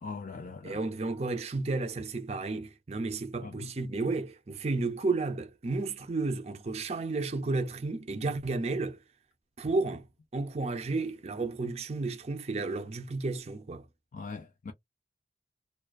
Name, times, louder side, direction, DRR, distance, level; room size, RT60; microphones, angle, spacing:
voice 1, 0.0-0.8 3.4-3.7 14.1-14.7, left 4 dB, 45° left, 0.3 m, -41 dB
voice 2, 0.6-9.0 9.6-10.1 10.3-13.8, right 3 dB, 35° right, 0.5 m, -32 dB
2.3 x 2.3 x 2.3 m
head